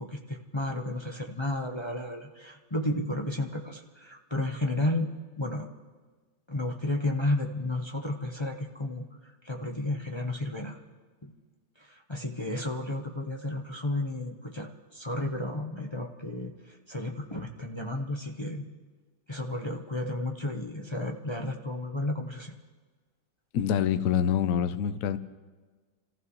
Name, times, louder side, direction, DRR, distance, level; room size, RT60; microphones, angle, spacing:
voice 1, 0.0-5.1 5.4-5.7 6.5-10.8 11.2-11.3 11.8-18.7 19.3-22.6, left 1 dB, 25° left, 1 dB, 0.6 m, -32 dB
voice 2, 23.5-25.2, left 9 dB, 60° left, 10 dB, 0.9 m, -26 dB
29.0 x 15.0 x 3.1 m, 1.4 s
omnidirectional pair, 2.1 m